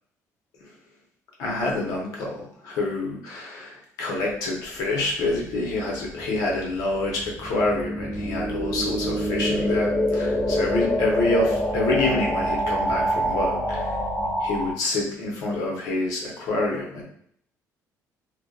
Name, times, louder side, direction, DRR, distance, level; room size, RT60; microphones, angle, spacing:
voice 1, 1.4-13.9 14.4-17.0, left 2 dB, 80° left, -2 dB, 0.8 m, -27 dB
sound 1, 5.5-14.7, equal, 25° left, 0.5 m, -26 dB
2.6 x 2.2 x 2.3 m, 0.65 s
cardioid pair, 155°, 6 cm